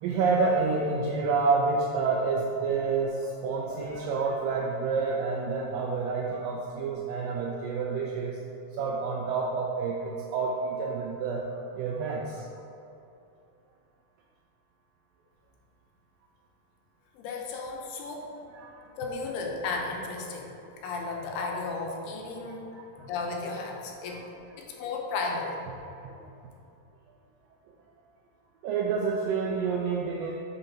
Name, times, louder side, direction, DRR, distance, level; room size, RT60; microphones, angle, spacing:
voice 1, 0.0-8.4 8.8-11.4 11.8-12.4 18.5-18.8 22.5-22.9 26.0-26.2 28.6-30.3, right 4 dB, 85° right, -2 dB, 2.0 m, -28 dB
voice 2, 17.1-18.3 19.0-20.5 20.8-22.7 23.0-24.2 24.6-25.5, left 3 dB, 90° left, 1 dB, 2.8 m, -34 dB
6.2 x 4.0 x 5.7 m, 2.7 s
omnidirectional pair, 4.5 m